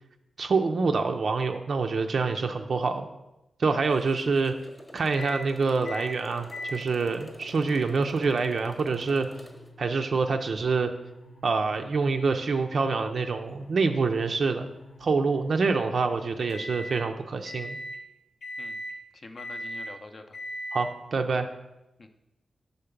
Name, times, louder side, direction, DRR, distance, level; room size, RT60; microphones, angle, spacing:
voice 1, 0.4-3.1 3.6-4.5 4.9-9.3 9.8-10.9 11.4-14.7 15.0-17.8 20.7-21.5, right 4 dB, 60° right, 6 dB, 0.4 m, -26 dB
Motorcycle, 3.8-9.7, equal, 5° left, 0.8 m, -49 dB
sound 1, 5.2-5.4 5.8-6.1 6.5-17.0 17.4-18.0 18.4-19.0 19.4-19.9 20.3-20.9, equal, 75° left, 0.9 m, -42 dB
voice 2, 19.1-20.4 22.0-22.1, left 3 dB, 45° left, 7 dB, 0.5 m, -46 dB
5.7 x 3.9 x 5.1 m, 0.94 s
wide cardioid pair, 115°, 0 cm